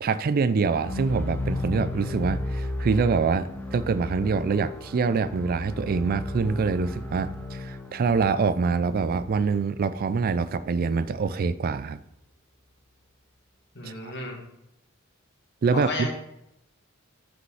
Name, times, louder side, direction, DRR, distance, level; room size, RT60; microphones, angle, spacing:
voice 1, 0.0-12.0 13.8-14.1 15.6-16.1, right 5 dB, 45° right, 15 dB, 0.3 m, -25 dB
sound 1, 0.7-10.7, left 1 dB, 10° left, 0.7 m, -35 dB
voice 2, 13.8-14.4 15.7-16.1, left 2 dB, 55° left, 1 dB, 1.9 m, -32 dB
6.4 x 5.1 x 6.3 m, 0.82 s
head